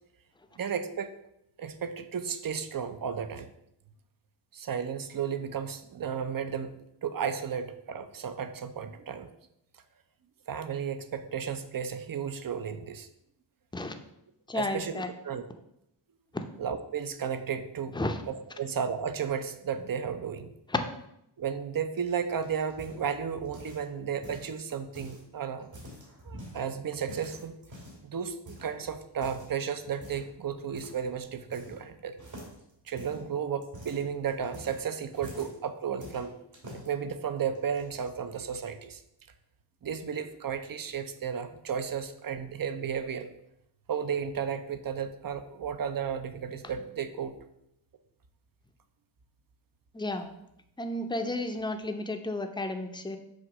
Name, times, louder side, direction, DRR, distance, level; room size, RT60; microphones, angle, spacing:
voice 1, 0.6-1.1 1.6-3.5 4.5-9.3 10.5-13.1 14.6-15.4 16.6-18.0 18.3-20.5 21.4-25.7 26.3-27.6 28.0-32.2 32.9-36.4 36.9-39.0 39.8-43.3 43.9-47.3, right 7 dB, 45° right, 10 dB, 0.6 m, -33 dB
voice 2, 14.5-15.1 16.3-16.4 17.9-18.2 20.7-20.8 49.9-50.3 50.8-53.2, left 2 dB, 10° left, 6 dB, 0.6 m, -32 dB
sound 1, 22.0-23.9 24.2-25.2 25.6-26.6 27.1-28.1 28.5-28.7 29.1-29.5 30.0-30.3 30.8-31.0 31.3-31.9 32.2-35.6 36.0-36.9 37.6-38.1, equal, 70° right, 2.7 m, -46 dB
7.9 x 2.7 x 6.0 m, 0.79 s
wide cardioid pair, 70°, 47 cm